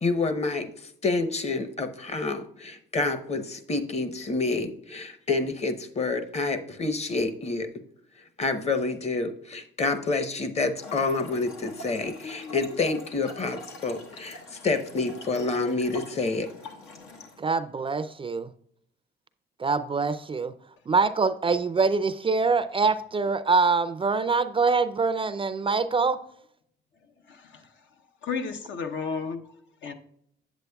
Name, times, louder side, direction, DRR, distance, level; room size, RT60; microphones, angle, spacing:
voice 1, 0.0-0.7 1.0-7.7 8.4-16.5, left 3 dB, 35° left, 9 dB, 0.9 m, -28 dB
Trickle dribble / Fill (with liquid), 10.8-17.4, left 2 dB, 90° left, 1.3 m, -44 dB
voice 2, 17.4-18.5 19.6-20.5 20.9-26.2, right 4 dB, 25° right, 11 dB, 0.4 m, -24 dB
voice 3, 27.3-27.7 28.2-29.4 29.8-29.9, left 5 dB, 70° left, 6 dB, 0.8 m, -32 dB
8.0 x 7.8 x 2.3 m, 0.70 s
cardioid pair, 90°, 20 cm